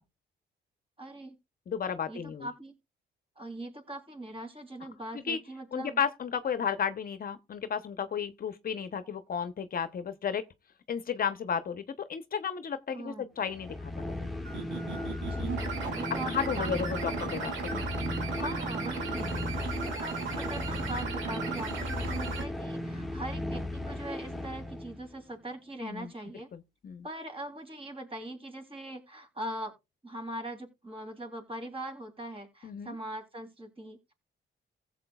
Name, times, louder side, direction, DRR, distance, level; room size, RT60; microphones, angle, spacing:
voice 1, 1.0-1.4 2.1-2.8 3.4-6.0 12.9-13.3 15.2-16.8 18.2-19.3 19.6-26.5 27.0-29.7 30.0-34.1, right 1 dB, 30° right, 3.2 m, -41 dB
voice 2, 1.7-2.5 5.3-5.4 5.7-10.4 10.9-14.3 16.3-17.9 19.1-19.4 25.8-26.1 26.5-27.0 32.6-33.0, left 7 dB, 45° left, 0.8 m, -33 dB
sound 1, 13.4-25.1, left 1 dB, ahead, 1.5 m, -36 dB
sound 2, 14.5-22.4, right 5 dB, 75° right, 2.4 m, -37 dB
15.5 x 7.4 x 2.3 m
cardioid pair, 90°, 20 cm